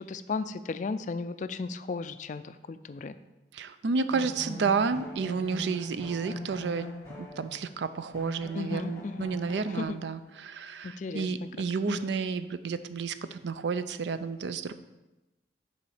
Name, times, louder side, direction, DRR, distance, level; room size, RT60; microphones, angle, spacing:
voice 1, 0.0-3.2 4.5-4.6 8.5-9.4 9.7-10.0 10.8-11.5 11.9-12.1, left 4 dB, 40° left, 12 dB, 0.3 m, -35 dB
voice 2, 3.5-6.9 7.2-14.7, right 5 dB, 70° right, 12 dB, 0.4 m, -31 dB
sound 1, 4.1-7.8 8.1-9.8, left 1 dB, 15° left, 1.8 m, -42 dB
6.8 x 4.2 x 6.4 m, 1.0 s
head